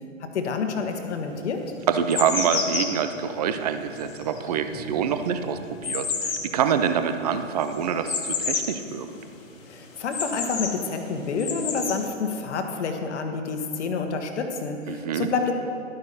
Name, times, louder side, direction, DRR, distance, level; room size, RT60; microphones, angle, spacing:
voice 1, 0.2-1.6 9.7-15.5, left 4 dB, 55° left, 5 dB, 1.3 m, -28 dB
sound 1, 1.0-1.1 1.7-8.8 9.1-9.2 9.6-10.8 11.3-12.1, left 5 dB, 75° left, 1.7 m, -31 dB
voice 2, 1.9-6.0 6.5-8.1 8.5-9.1 14.9-15.3, right 7 dB, 30° right, 9 dB, 0.4 m, -25 dB
12.0 x 9.5 x 4.1 m, 2.5 s
hypercardioid pair, 135°, 40 cm